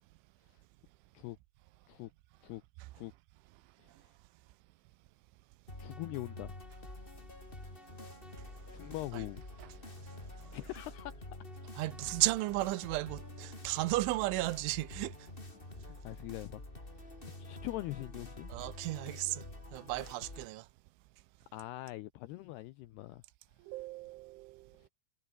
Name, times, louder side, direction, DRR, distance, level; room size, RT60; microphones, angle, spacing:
sound 1, 5.7-20.5, left 1 dB, 10° left, 4.7 m, -48 dB
voice 1, 5.8-6.5 8.7-9.4 10.5-11.1 15.9-16.6 17.4-18.5 21.5-23.2, left 17 dB, 80° left, 2.5 m, -42 dB
voice 2, 10.0-10.6 11.8-15.3 18.5-19.5 19.7-20.7 23.6-24.8, right 19 dB, 90° right, 3.4 m, -35 dB
omnidirectional pair, 5.4 m